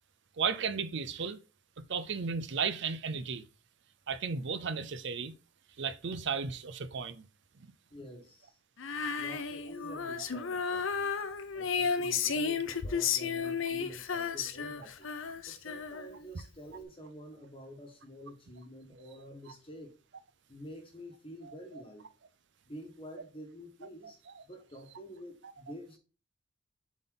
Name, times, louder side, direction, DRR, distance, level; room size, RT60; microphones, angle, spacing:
voice 1, 0.4-1.4 1.9-3.4 4.1-5.3 5.8-7.2 7.6-7.7 10.2-10.3 19.0-19.1 21.4-21.5 24.3-24.4, right 5 dB, 60° right, 0.6 m, -34 dB
voice 2, 7.9-8.6 9.2-11.1 11.5-15.1 15.5-19.9 20.5-22.0 22.7-24.2 24.5-26.0, equal, 25° left, 1.3 m, -48 dB
Female singing, 8.8-16.3, left 6 dB, 75° left, 0.6 m, -33 dB
7.3 x 4.1 x 3.8 m
head